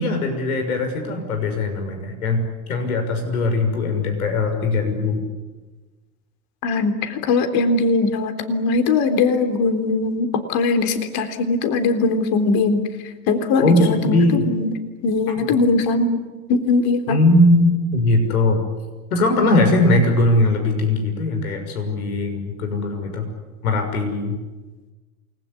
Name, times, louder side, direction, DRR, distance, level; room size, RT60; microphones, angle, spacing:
voice 1, 0.0-2.4 2.7-5.2 13.6-14.4 17.1-18.6 19.1-23.3 23.6-24.4, left 2 dB, 85° left, 5 dB, 6.3 m, -20 dB
voice 2, 6.6-12.8 13.3-14.7 15.0-16.2 16.5-17.2, left 3 dB, 55° left, 7 dB, 3.8 m, -20 dB
28.5 x 21.0 x 9.9 m, 1.3 s
hypercardioid pair, 90°, 43 cm